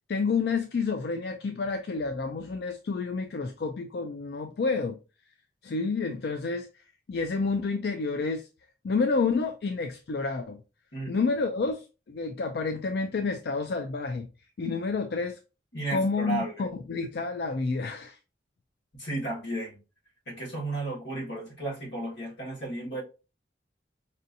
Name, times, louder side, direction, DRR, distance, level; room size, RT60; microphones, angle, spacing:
voice 1, 0.1-5.0 5.6-6.7 7.1-8.4 8.8-10.6 11.1-14.3 14.6-15.4 15.9-18.2, left 4 dB, 60° left, 0.4 m, -29 dB
voice 2, 10.9-11.4 15.7-16.7 19.0-19.8 20.2-23.0, right 2 dB, 85° left, 1.7 m, -34 dB
5.3 x 2.7 x 2.6 m
head